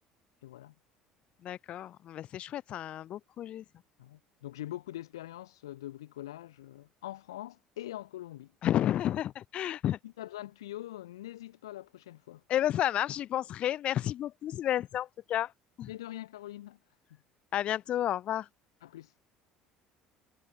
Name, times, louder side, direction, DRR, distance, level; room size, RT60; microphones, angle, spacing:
voice 1, 0.4-0.7 4.0-8.5 10.0-12.4 15.9-16.8 17.1-17.2 18.8-19.1, left 14 dB, 80° left, 0.9 m, -43 dB
voice 2, 1.4-3.6 8.6-10.0 12.5-15.5 15.8-15.9 17.5-18.5, left 12 dB, 50° left, 0.4 m, -31 dB
hypercardioid pair, 65°, 2 cm